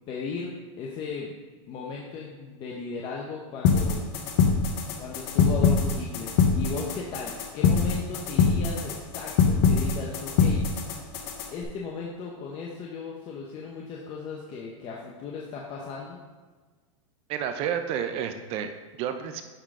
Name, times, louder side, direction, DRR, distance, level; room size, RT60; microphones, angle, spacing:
voice 1, 0.1-0.5 0.8-1.3 1.7-4.0 5.0-10.8 11.5-16.2, left 5 dB, 30° left, -2 dB, 0.8 m, -36 dB
sound 1, 3.6-11.6, left 5 dB, 50° left, 1.1 m, -24 dB
voice 2, 17.3-19.4, right 8 dB, 35° right, 8 dB, 0.6 m, -30 dB
10.0 x 3.7 x 3.7 m, 1.4 s
supercardioid pair, 145°, 17 cm